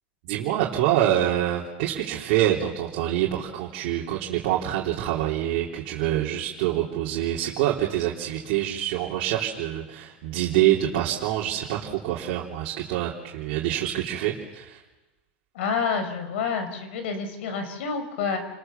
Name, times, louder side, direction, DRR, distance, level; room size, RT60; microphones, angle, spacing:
voice 1, 0.2-14.8, right 12 dB, 60° right, -4 dB, 3.6 m, -26 dB
voice 2, 15.6-18.4, left 5 dB, 75° left, 8 dB, 5.2 m, -28 dB
29.5 x 22.0 x 7.2 m, 1.1 s
supercardioid pair, 145°, 6 cm